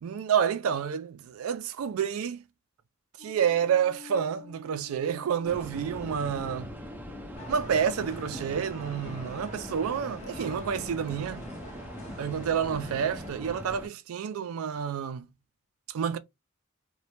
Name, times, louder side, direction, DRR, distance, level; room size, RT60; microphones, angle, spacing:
voice 1, 0.0-2.4 3.2-6.7 7.5-11.5 12.2-15.3 15.9-16.2, right 8 dB, 85° right, 0.3 m, -29 dB
sound 1, 3.2-9.7, left 7 dB, 80° left, 0.8 m, -50 dB
sound 2, 5.4-13.9, equal, 10° right, 0.5 m, -42 dB
sound 3, 7.4-13.3, left 1 dB, 35° left, 0.8 m, -45 dB
2.2 x 2.0 x 2.9 m
head